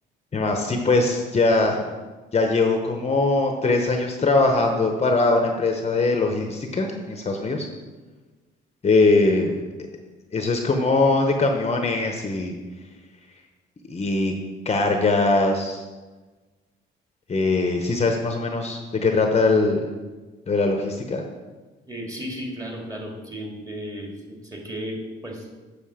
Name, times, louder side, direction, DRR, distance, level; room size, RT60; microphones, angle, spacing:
voice 1, 0.3-1.9 2.3-7.7 8.8-9.6 10.3-12.5 13.9-14.3 14.6-15.8 17.3-19.8 20.5-21.2, left 3 dB, 30° left, 3 dB, 0.9 m, -21 dB
voice 2, 21.9-25.5, equal, 15° right, 0 dB, 2.4 m, -34 dB
7.6 x 6.6 x 5.0 m, 1.3 s
cardioid pair, 90°, 20 cm